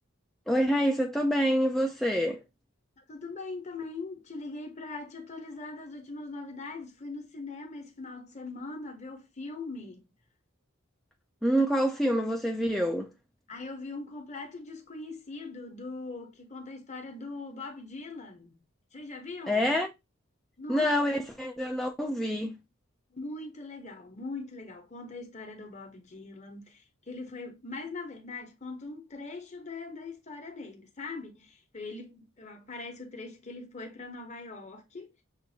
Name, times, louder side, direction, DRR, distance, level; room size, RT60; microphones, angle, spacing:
voice 1, 0.5-2.4 11.4-13.1 19.5-19.9 20.7-22.6, equal, ahead, 0.4 m, -26 dB
voice 2, 3.0-10.1 13.5-18.5 18.9-19.8 20.6-21.1 23.1-35.1, left 3 dB, 35° left, 1.1 m, -41 dB
6.7 x 2.6 x 2.8 m
head